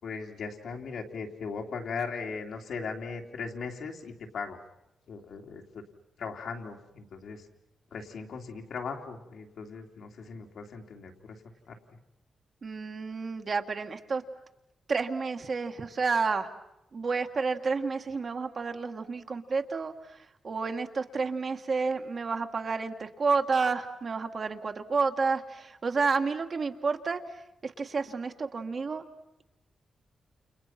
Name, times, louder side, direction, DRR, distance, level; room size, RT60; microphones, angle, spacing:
voice 1, 0.0-4.6 5.1-5.8 6.2-7.5 7.9-11.7, left 5 dB, 70° left, 2 dB, 3.1 m, -38 dB
voice 2, 12.6-14.2 14.9-16.5 16.9-20.2 20.4-27.2 27.6-29.0, right 4 dB, 40° right, 5 dB, 1.6 m, -30 dB
29.5 x 29.5 x 5.9 m, 0.88 s
wide cardioid pair, 165°, 0 cm